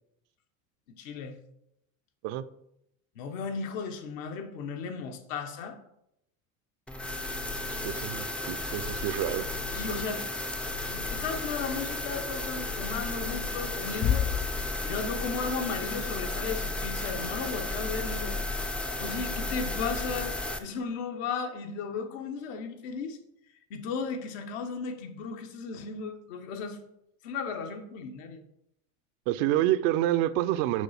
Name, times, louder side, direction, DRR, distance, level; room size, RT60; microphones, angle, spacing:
voice 1, 0.9-1.4 3.1-5.8 9.7-10.2 10.9-14.3 14.8-18.4 19.0-23.2 23.7-26.8 27.2-28.4, left 5 dB, 70° left, 1.1 m, -35 dB
sound 1, 6.9-20.6, left 2 dB, 5° left, 0.4 m, -33 dB
voice 2, 7.8-9.5 29.3-30.8, right 13 dB, 60° right, 0.5 m, -28 dB
sound 2, 14.0-15.5, left 9 dB, 45° left, 1.0 m, -29 dB
6.3 x 3.2 x 5.7 m
supercardioid pair, 100°, 40 cm